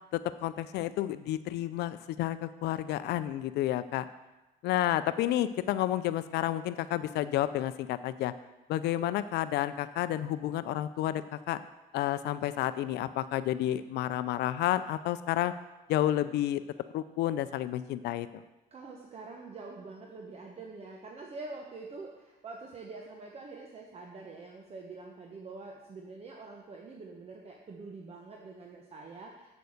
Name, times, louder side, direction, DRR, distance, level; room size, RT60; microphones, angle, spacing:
voice 1, 0.1-4.1 4.6-8.3 8.7-11.6 11.9-15.5 15.9-16.6 16.9-18.4, left 13 dB, 80° left, 13 dB, 0.5 m, -30 dB
voice 2, 18.7-29.5, right 3 dB, 35° right, 1 dB, 1.1 m, -45 dB
8.1 x 6.9 x 6.5 m, 1.0 s
cardioid pair, 110°, 17 cm